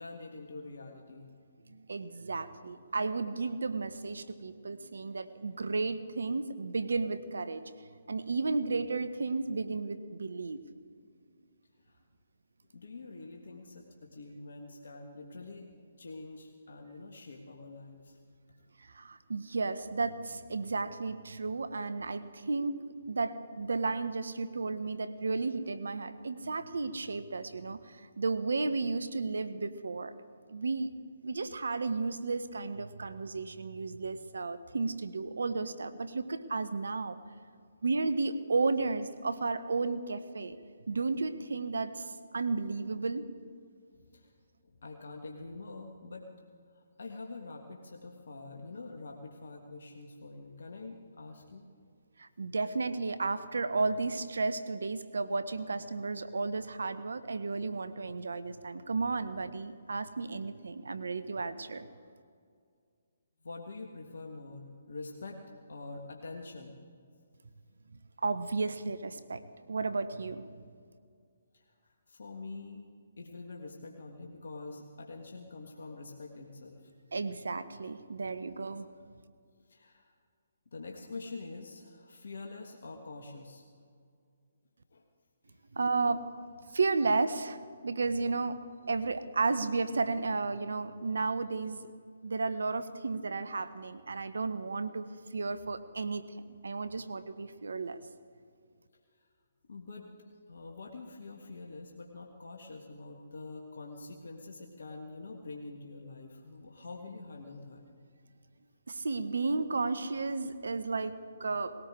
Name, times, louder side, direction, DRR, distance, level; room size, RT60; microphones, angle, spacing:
voice 1, 0.0-1.3 11.8-12.0 12.7-15.7 16.0-18.2 43.9-44.3 44.6-46.3 46.7-51.7 62.0-62.1 63.4-66.8 71.5-71.6 72.1-76.9 78.2-78.5 79.7-80.1 80.7-83.7 84.9-85.0 85.5-85.6 99.7-107.8, left 3 dB, 70° left, 2 dB, 1.5 m, -46 dB
voice 2, 1.7-7.6 8.1-10.6 18.8-30.1 30.5-30.9 31.2-37.2 37.8-40.6 40.9-43.2 52.2-61.9 68.2-69.4 69.7-70.4 77.1-78.9 85.7-86.3 86.7-88.6 88.9-91.9 92.2-95.1 95.3-98.0 108.9-111.7, right 3 dB, 75° right, 12 dB, 0.9 m, -33 dB
20.5 x 17.5 x 3.7 m, 2.2 s
figure-of-eight pair, 140°, 0 cm